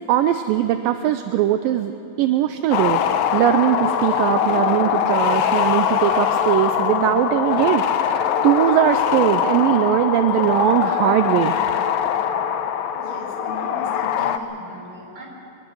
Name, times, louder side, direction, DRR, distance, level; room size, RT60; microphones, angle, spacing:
voice 1, 0.1-1.9 2.2-3.0 3.3-11.5, right 12 dB, 80° right, 9 dB, 2.1 m, -20 dB
sound 1, 2.7-14.4, left 9 dB, 90° left, 1.6 m, -22 dB
voice 2, 12.9-15.3, left 2 dB, 20° right, -2 dB, 4.5 m, -38 dB
23.0 x 21.5 x 6.3 m, 3.0 s
omnidirectional pair, 4.5 m